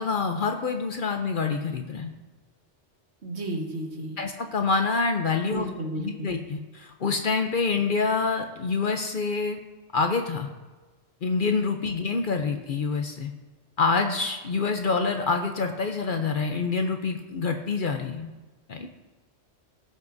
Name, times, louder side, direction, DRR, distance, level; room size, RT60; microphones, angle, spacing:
voice 1, 0.0-2.1 4.2-5.7 6.0-9.6 9.9-10.5 11.2-13.3 13.8-18.3 18.7-18.9, left 4 dB, 55° left, 5 dB, 0.7 m, -26 dB
voice 2, 3.2-4.2 5.5-6.3 12.4-12.5, right 1 dB, 65° right, 1 dB, 1.6 m, -33 dB
17.5 x 5.9 x 2.6 m, 1.2 s
omnidirectional pair, 1.2 m